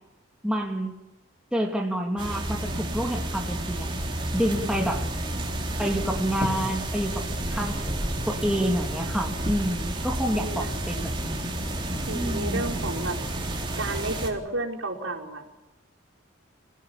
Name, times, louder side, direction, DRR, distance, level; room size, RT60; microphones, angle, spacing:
voice 1, 0.4-0.9 1.5-3.9 4.3-5.1 5.8-7.1 7.5-11.5 12.1-12.6, equal, 5° right, 1 dB, 2.8 m, -28 dB
sound 1, 2.2-14.3, right 1 dB, 25° right, 3.9 m, -30 dB
voice 2, 10.3-10.7 12.1-13.2 13.8-15.6, right 2 dB, 85° right, 1 dB, 4.9 m, -32 dB
27.0 x 17.0 x 8.8 m, 1.0 s
head